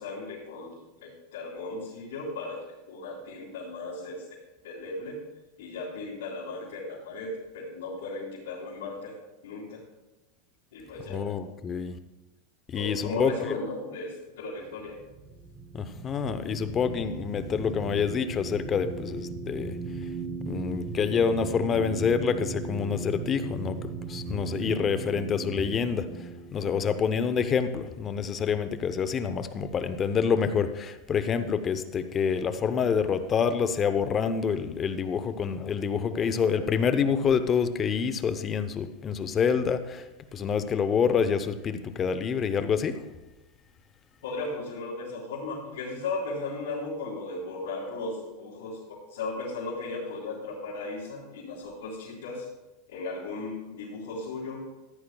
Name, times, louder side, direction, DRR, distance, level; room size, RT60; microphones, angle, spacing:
voice 1, 0.0-4.2 4.6-5.2 5.6-9.2 9.4-9.8 10.7-11.2 12.7-15.0 44.2-48.8 49.1-52.5 52.9-54.7, left 3 dB, 75° left, -9 dB, 3.7 m, -36 dB
voice 2, 11.1-12.0 12.7-13.3 15.7-19.8 20.5-26.1 26.5-40.1 40.3-43.1, left 6 dB, 25° left, 11 dB, 0.7 m, -27 dB
sound 1, 14.6-28.3, right 4 dB, 25° right, 0.9 m, -38 dB
14.5 x 10.5 x 2.3 m, 1.0 s
supercardioid pair, 135°, 0 cm